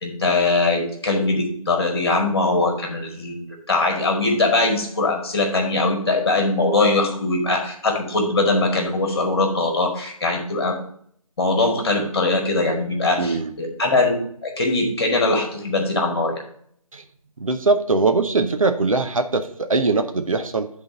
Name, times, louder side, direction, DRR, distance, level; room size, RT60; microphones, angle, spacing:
voice 1, 0.0-10.8 11.4-14.2 14.4-16.4, left 2 dB, 40° left, 2 dB, 1.9 m, -21 dB
voice 2, 13.2-13.5 16.9-17.0 17.4-20.7, right 3 dB, 65° right, 7 dB, 0.8 m, -21 dB
9.8 x 3.8 x 5.1 m, 0.64 s
figure-of-eight pair, 155°, 19 cm